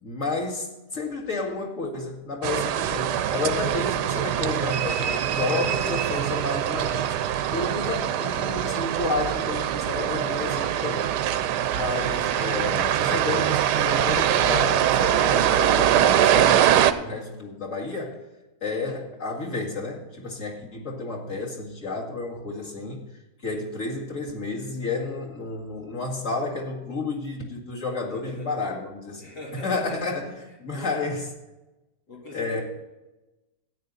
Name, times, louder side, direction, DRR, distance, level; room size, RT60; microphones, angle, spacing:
voice 1, 0.0-11.1 11.7-18.2 18.6-23.1 23.4-31.3 32.3-32.6, left 3 dB, 50° left, -2 dB, 2.4 m, -31 dB
sound 1, 2.4-16.9, right 10 dB, 90° right, 1.2 m, -23 dB
voice 2, 28.1-28.5 29.2-30.2 30.7-31.0 32.1-32.6, left 2 dB, 90° left, -3 dB, 3.8 m, -39 dB
13.5 x 9.5 x 4.0 m, 1.1 s
omnidirectional pair, 1.8 m